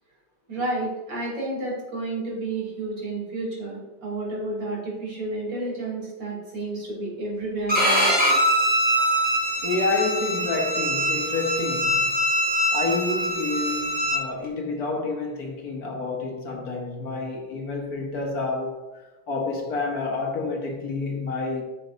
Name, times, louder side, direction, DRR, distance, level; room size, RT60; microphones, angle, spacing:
voice 1, 0.5-8.1, right 2 dB, 70° right, 3.9 m, -31 dB
Bowed string instrument, 7.7-14.2, equal, 5° right, 2.4 m, -23 dB
voice 2, 9.6-12.2 12.7-18.8 19.3-21.6, left 3 dB, 55° left, 1.7 m, -28 dB
13.5 x 6.4 x 2.6 m
omnidirectional pair, 2.1 m